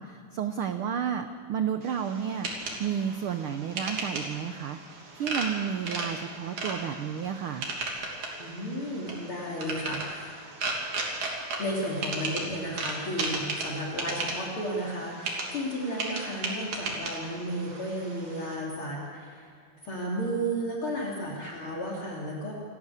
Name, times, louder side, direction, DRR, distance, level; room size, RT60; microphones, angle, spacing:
voice 1, 0.0-2.5 2.8-7.7, right 8 dB, 85° right, 8 dB, 1.1 m, -32 dB
sound 1, 1.8-18.6, right 2 dB, 70° right, 4.5 m, -36 dB
voice 2, 8.4-10.3 11.6-19.5 19.8-22.5, equal, 40° left, -2 dB, 3.6 m, -33 dB
28.5 x 12.5 x 8.4 m, 2.2 s
omnidirectional pair, 3.6 m